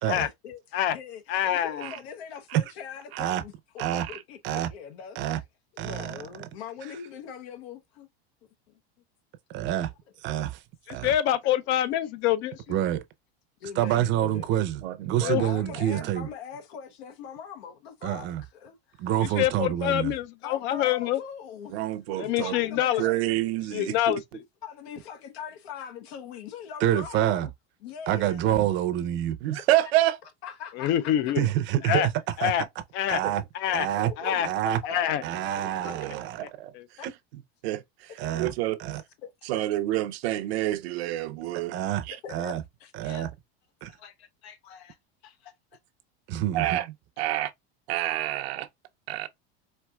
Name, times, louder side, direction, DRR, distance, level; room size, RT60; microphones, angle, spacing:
voice 1, 0.1-0.6 0.9-5.2 5.7-8.1 8.7-8.8 13.6-14.5 15.2-19.1 20.4-21.8 22.1-23.2 24.6-27.5 27.8-28.4 29.4-29.9 30.4-31.3 33.9-34.4 35.8-35.9 37.0-37.1 39.2-39.6 42.2-42.5 42.8-43.3 43.9-45.0 45.2-45.5, left 7 dB, 80° left, 0.9 m, -42 dB
voice 2, 1.3-1.9 10.9-12.7 15.2-15.4 19.2-21.2 22.2-23.0 23.7-24.4 30.7-31.5 31.8-32.1 32.4-32.6 32.9-33.2 33.5-33.9 34.2-34.5 34.9-35.2 36.4-36.5 36.7-36.9, left 11 dB, 40° left, 0.4 m, -26 dB
voice 3, 5.8-6.5 9.5-9.9 10.2-10.6 10.9-11.1 12.7-13.0 13.8-16.3 18.0-18.4 19.0-20.1 26.8-27.5 28.1-29.4 31.4-32.1 32.4-32.5 33.1-33.4 33.7-34.1 34.4-34.8 35.2-36.4 37.0-37.1 38.2-38.5 38.8-39.0 41.7-42.6 42.9-43.3 43.8-43.9 46.3-46.8, right 12 dB, 35° right, 0.6 m, -27 dB
voice 4, 14.8-15.4 15.9-16.1 21.7-22.5 23.0-23.9 29.4-30.2 34.9-35.0 35.8-36.7 37.6-37.8 38.3-38.8 39.5-41.8 42.1-42.2 46.5-46.9 47.2-47.5 47.9-48.7 49.1-49.3, right 15 dB, 75° right, 0.7 m, -28 dB
4.4 x 2.6 x 2.3 m
supercardioid pair, 145°, 31 cm